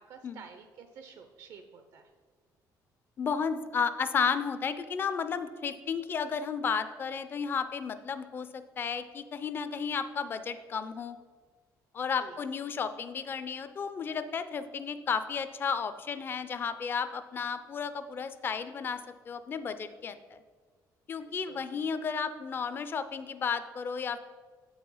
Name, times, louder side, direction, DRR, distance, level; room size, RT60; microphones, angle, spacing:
voice 1, 0.0-2.1 12.2-12.4 21.2-21.7, right 6 dB, 60° right, 7 dB, 0.5 m, -51 dB
voice 2, 3.2-11.2 11.9-19.0 19.3-20.4 21.1-24.2, left 6 dB, 30° left, 11 dB, 0.4 m, -33 dB
7.7 x 4.8 x 5.4 m, 1.5 s
cardioid pair, 165°, 7 cm